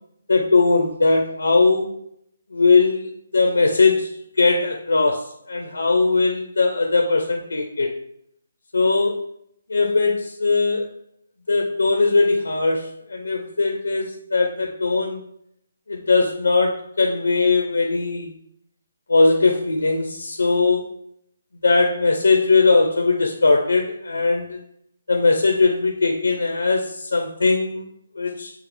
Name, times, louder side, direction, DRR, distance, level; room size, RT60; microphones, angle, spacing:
voice 1, 0.3-1.9 2.5-4.1 4.4-7.9 8.7-9.2 9.7-10.9 11.5-15.2 15.9-18.3 19.1-20.9 21.6-24.6 25.1-27.9 28.1-28.5, left 3 dB, 80° left, 3 dB, 0.7 m, -19 dB
6.2 x 2.4 x 3.4 m, 0.70 s
figure-of-eight pair, 150°, 0 cm